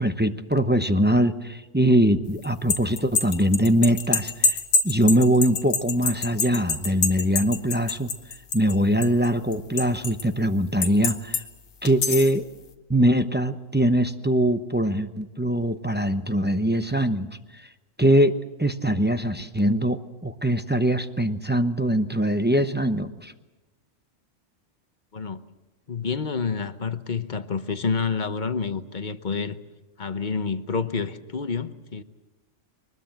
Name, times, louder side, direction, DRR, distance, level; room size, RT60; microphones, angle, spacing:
voice 1, 0.0-8.1 8.5-11.4 11.8-12.5 12.9-17.7 18.0-23.3, equal, 10° right, 0.7 m, -22 dB
sound 1, 2.4-8.7 9.0-10.2 10.8-11.4 11.8-12.4, left 4 dB, 85° left, 1.7 m, -25 dB
voice 2, 25.9-29.6 30.0-32.0, left 5 dB, 40° left, 1.0 m, -28 dB
23.5 x 20.5 x 7.7 m
omnidirectional pair, 1.3 m